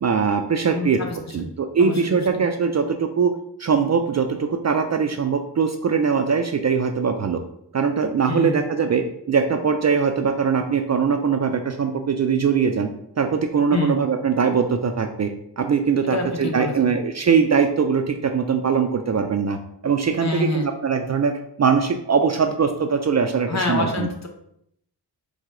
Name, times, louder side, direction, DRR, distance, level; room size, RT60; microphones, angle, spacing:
voice 1, 0.0-1.0 1.3-3.3 3.6-7.4 7.7-12.9 13.2-15.3 15.6-19.6 19.8-21.3 21.6-24.1, right 6 dB, 40° right, 6 dB, 0.4 m, -21 dB
voice 2, 0.7-1.2 1.8-2.4 8.3-8.6 13.7-14.0 16.0-16.7 20.2-20.7 23.5-24.3, left 3 dB, 40° left, 2 dB, 0.9 m, -27 dB
4.8 x 2.2 x 3.7 m, 0.73 s
cardioid pair, 50°, 43 cm